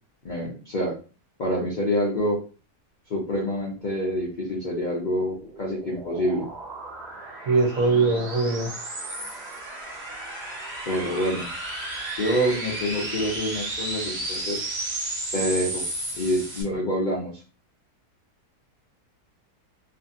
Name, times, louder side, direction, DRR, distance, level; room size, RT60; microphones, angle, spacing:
voice 1, 0.2-1.0 1.4-2.4 3.1-6.5 10.9-11.5 12.2-14.7 15.3-15.8 16.2-17.3, equal, 70° left, -3 dB, 0.4 m, -26 dB
sound 1, 4.9-16.6, right 2 dB, 35° right, 0.9 m, -34 dB
voice 2, 7.5-8.7, right 3 dB, 65° right, 3 dB, 1.0 m, -21 dB
2.7 x 2.5 x 2.6 m, 0.36 s
omnidirectional pair, 1.7 m